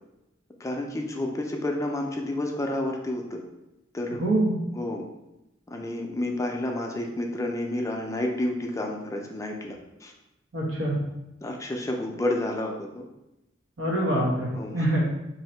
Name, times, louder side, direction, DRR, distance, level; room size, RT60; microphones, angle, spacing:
voice 1, 0.6-3.4 3.9-4.2 4.7-5.0 5.7-10.1 11.4-13.1 14.6-14.8, left 1 dB, 15° left, 1 dB, 0.4 m, -30 dB
voice 2, 4.2-4.6 10.5-11.0 13.8-15.0, right 1 dB, 80° right, -4 dB, 1.0 m, -25 dB
2.8 x 2.6 x 4.3 m, 0.93 s
head